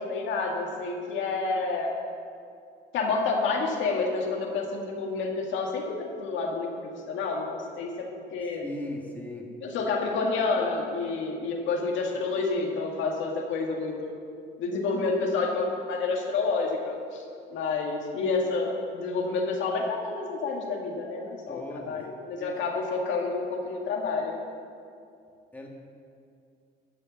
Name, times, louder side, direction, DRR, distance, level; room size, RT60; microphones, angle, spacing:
voice 1, 0.0-1.9 2.9-8.1 8.3-8.6 9.6-14.1 14.6-17.2 17.5-24.4, left 4 dB, 85° left, 0 dB, 1.9 m, -29 dB
voice 2, 8.6-9.5 21.5-22.0 22.4-22.6 25.5-25.7, left 1 dB, 10° left, -1 dB, 1.8 m, -38 dB
12.5 x 6.8 x 7.1 m, 2.4 s
cardioid pair, 115°, 19 cm